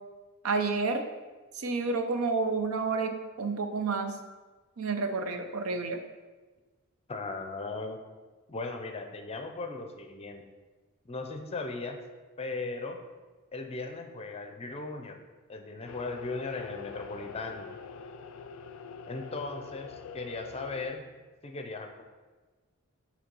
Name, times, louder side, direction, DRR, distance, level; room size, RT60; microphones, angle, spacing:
voice 1, 0.4-1.1 1.5-4.2 4.8-6.0, right 4 dB, 80° right, 6 dB, 0.6 m, -30 dB
voice 2, 7.1-8.0 8.5-10.4 11.0-12.0 12.4-13.0 13.5-15.1 15.5-17.7 19.1-21.0 21.4-22.0, left 3 dB, 30° left, 4 dB, 0.6 m, -37 dB
sound 1, 15.9-20.9, left 5 dB, 80° left, 0.4 m, -45 dB
6.8 x 3.2 x 5.3 m, 1.3 s
head